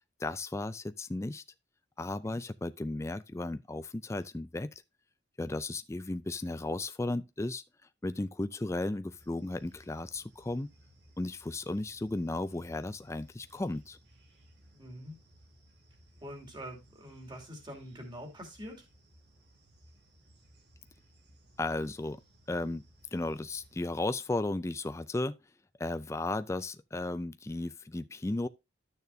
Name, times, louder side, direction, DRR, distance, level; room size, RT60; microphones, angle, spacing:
voice 1, 0.2-1.4 2.0-4.7 5.4-7.6 8.0-10.7 11.2-14.0 21.6-22.2 22.5-22.8 23.1-25.4 25.8-28.5, left 2 dB, 15° left, 0.3 m, -35 dB
sound 1, 9.1-23.9, right 1 dB, 55° right, 2.5 m, -61 dB
voice 2, 14.7-15.1 16.2-18.9, equal, 25° right, 2.6 m, -45 dB
12.5 x 6.7 x 2.7 m
head